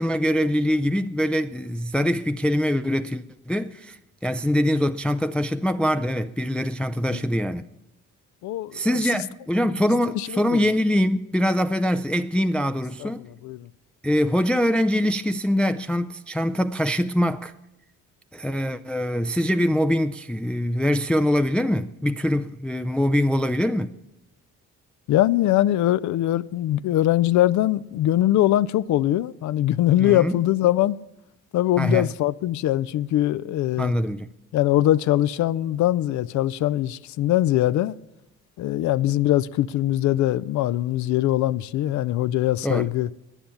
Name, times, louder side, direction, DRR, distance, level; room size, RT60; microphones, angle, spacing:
voice 1, 0.0-7.6 8.7-13.3 14.0-17.5 18.3-23.9 30.0-30.4 31.8-32.1 33.8-34.3 42.6-42.9, equal, 5° left, 0.3 m, -23 dB
voice 2, 8.4-8.9 9.8-10.6 13.0-13.1 13.4-13.7 25.1-31.0 31.5-33.9 34.5-37.9 38.6-43.1, left 14 dB, 70° left, 0.4 m, -22 dB
10.0 x 10.0 x 7.0 m
cardioid pair, 90°, 30 cm